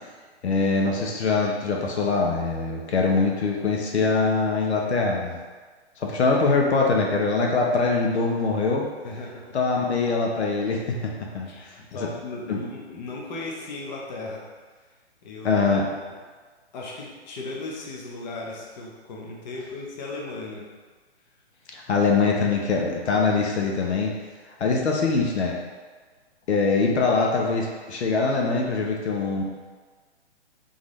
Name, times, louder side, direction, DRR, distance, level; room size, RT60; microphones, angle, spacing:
voice 1, 0.4-5.4 6.0-8.9 9.5-11.8 12.5-12.6 15.4-15.9 21.7-24.1 24.5-25.5 26.5-29.4, left 4 dB, 75° left, 0 dB, 0.8 m, -23 dB
voice 2, 9.0-9.4 11.4-14.4 15.2-15.6 16.7-20.6, left 2 dB, 40° left, -2 dB, 0.9 m, -36 dB
3.9 x 3.6 x 3.1 m, 1.4 s
hypercardioid pair, 150°, 33 cm